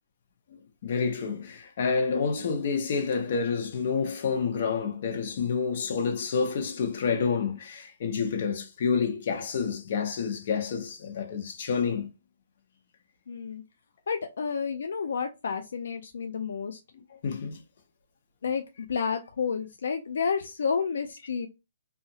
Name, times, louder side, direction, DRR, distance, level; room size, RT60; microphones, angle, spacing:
voice 1, 0.8-12.1 17.2-17.6, left 5 dB, 55° left, 0.7 m, -28 dB
voice 2, 13.3-13.6 14.1-16.8 18.4-21.5, left 6 dB, 80° left, 0.4 m, -30 dB
2.8 x 2.4 x 2.7 m
hypercardioid pair, 160°, 0 cm